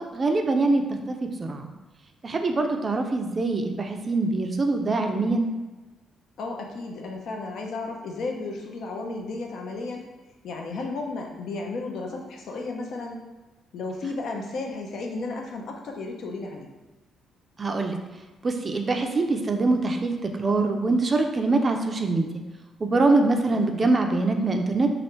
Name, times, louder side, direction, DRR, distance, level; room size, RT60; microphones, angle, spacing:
voice 1, 0.0-1.7 2.2-5.5 17.6-18.0 18.4-22.4 22.8-24.9, right 3 dB, 35° right, 4 dB, 0.4 m, -24 dB
voice 2, 6.4-10.1 10.4-13.2 13.7-16.7 23.5-23.7, left 3 dB, 70° left, 1 dB, 0.5 m, -33 dB
3.2 x 2.4 x 3.0 m, 1.2 s
cardioid pair, 90°, 0 cm